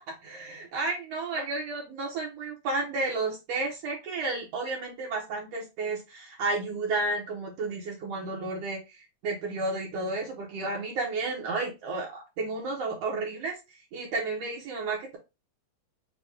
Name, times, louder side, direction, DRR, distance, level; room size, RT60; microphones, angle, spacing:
voice 1, 0.2-9.0 9.2-13.5 13.9-15.2, right 3 dB, 80° right, -1 dB, 1.4 m, -32 dB
5.8 x 2.2 x 3.3 m, 0.25 s
omnidirectional pair, 4.3 m